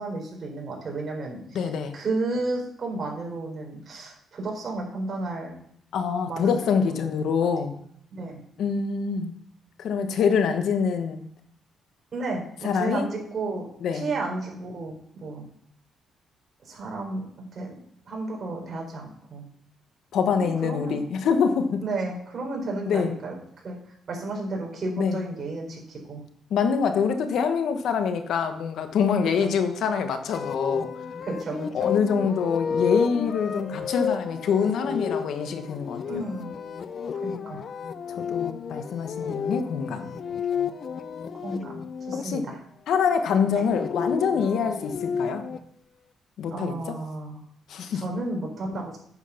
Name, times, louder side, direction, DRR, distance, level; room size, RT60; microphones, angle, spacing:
voice 1, 0.0-1.6 1.9-5.5 6.2-6.6 6.9-7.3 8.1-8.4 12.1-13.7 13.9-15.4 16.6-17.8 18.0-19.4 20.4-21.0 21.8-23.3 23.6-26.2 29.4-29.5 31.2-31.7 36.1-36.5 37.2-37.6 41.4-42.6 43.5-43.6 46.5-47.4 47.9-49.0, right 2 dB, 45° right, 0 dB, 4.4 m, -32 dB
voice 2, 1.5-1.9 5.9-7.7 8.6-9.4 9.8-11.2 12.6-13.1 13.8-14.1 20.1-21.8 22.9-23.1 25.0-25.2 26.5-30.9 31.7-36.2 38.2-40.1 42.2-42.5 42.9-45.4 46.4-46.7 47.7-48.0, left 6 dB, 75° left, 7 dB, 1.2 m, -25 dB
sound 1, 30.3-42.2 43.4-45.6, left 6 dB, 55° left, 0.7 m, -31 dB
9.4 x 7.4 x 5.7 m, 0.67 s
cardioid pair, 90°, 0 cm